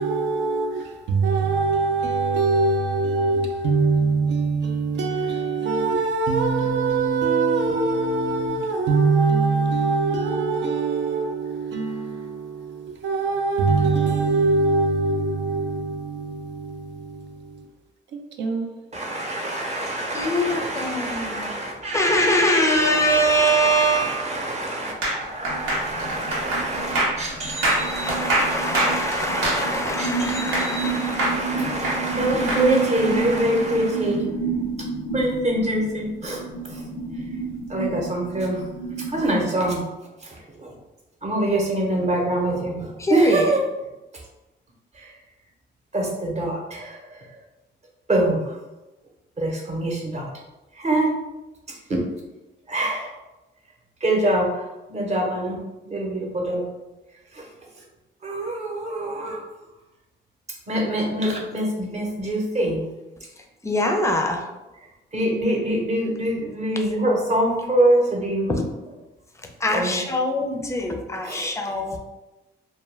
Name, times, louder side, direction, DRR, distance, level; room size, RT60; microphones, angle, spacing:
voice 1, 0.0-17.6 18.1-18.8, right 4 dB, 65° right, 0.4 m, -23 dB
voice 2, 18.9-34.2 35.1-36.8 37.7-38.6 39.1-39.8 40.2-40.7 41.2-43.6 45.0-45.1 45.9-47.3 48.1-48.6 49.4-50.3 50.7-51.1 52.7-53.1 54.0-56.6 57.3-57.4 58.2-59.4 60.7-62.8 65.1-68.5 69.7-70.0 71.2-71.5, right 1 dB, 35° right, 0.8 m, -25 dB
voice 3, 20.1-21.5 21.9-24.2 27.4-31.3 43.0-43.5 63.6-64.4 69.6-72.0, equal, 15° left, 0.4 m, -23 dB
sound 1, 25.0-30.9 31.2-32.7, right 1 dB, 90° right, 0.8 m, -24 dB
sound 2, 25.4-39.3, right 4 dB, 80° left, 0.4 m, -30 dB
2.2 x 2.1 x 3.2 m
cardioid pair, 90°, 20 cm